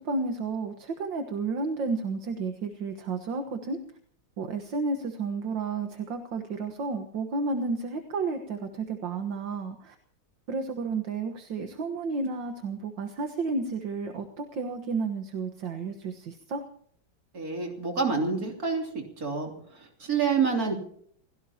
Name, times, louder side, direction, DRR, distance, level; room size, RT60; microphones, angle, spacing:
voice 1, 0.0-3.8 4.4-10.0 10.5-16.6, right 4 dB, 70° right, 6 dB, 2.1 m, -32 dB
voice 2, 17.3-18.9 19.2-19.5 19.8-20.7, right 5 dB, 45° right, 2 dB, 3.6 m, -27 dB
28.5 x 17.0 x 2.9 m, 0.62 s
omnidirectional pair, 2.2 m